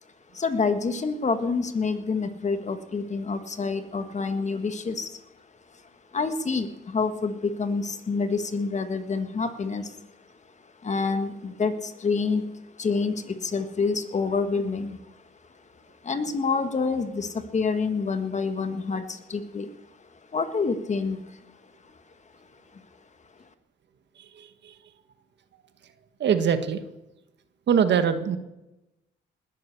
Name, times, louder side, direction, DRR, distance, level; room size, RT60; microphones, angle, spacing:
voice 1, 0.3-5.2 6.1-10.0 10.8-12.5 12.8-15.0 16.0-19.7 20.3-21.4, left 4 dB, 35° left, 9 dB, 1.7 m, -27 dB
voice 2, 24.2-24.8 26.2-26.8 27.7-28.4, right 7 dB, 65° right, 10 dB, 1.5 m, -23 dB
20.0 x 9.4 x 7.0 m, 0.97 s
cardioid pair, 90°, 20 cm